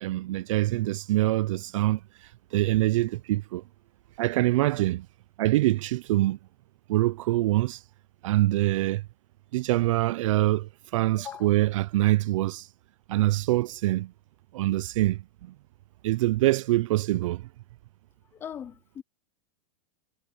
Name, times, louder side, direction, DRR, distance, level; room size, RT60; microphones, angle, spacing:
voice 1, 0.0-2.0 2.5-3.6 4.2-5.1 5.4-6.4 6.9-7.8 8.2-9.0 9.5-12.7 13.1-14.1 14.5-15.5 16.0-17.4, right 16 dB, 65° right, 0.4 m, -24 dB
voice 2, 11.2-11.5 18.3-19.0, left 9 dB, 10° left, 0.4 m, -40 dB
supercardioid pair, 165°, 18 cm